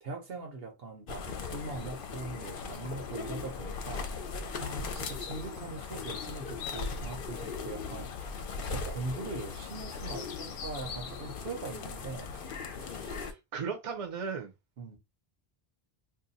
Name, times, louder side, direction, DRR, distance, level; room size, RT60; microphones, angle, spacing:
voice 1, 0.0-4.2 4.6-8.3 8.6-12.5 14.8-15.0, right 3 dB, 75° right, 1.1 m, -41 dB
sound 1, 1.1-13.3, left 5 dB, 65° left, 0.7 m, -38 dB
voice 2, 12.8-14.5, right 6 dB, 40° right, 0.7 m, -37 dB
2.7 x 2.2 x 4.0 m
omnidirectional pair, 1.0 m